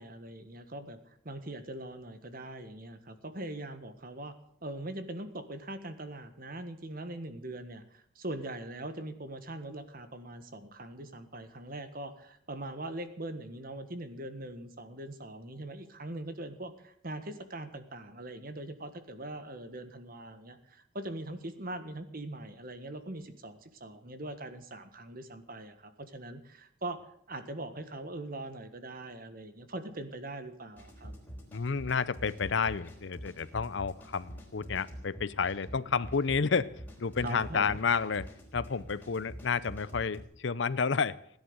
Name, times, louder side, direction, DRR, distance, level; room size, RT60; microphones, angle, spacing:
voice 1, 0.0-4.3 4.6-27.0 27.3-31.1 37.2-37.8, right 1 dB, 45° right, 9 dB, 1.6 m, -42 dB
sound 1, 30.8-40.2, equal, 10° left, 3.8 m, -47 dB
voice 2, 31.5-36.7 37.0-41.2, left 5 dB, 60° left, 17 dB, 0.6 m, -30 dB
17.0 x 10.5 x 8.1 m, 0.69 s
head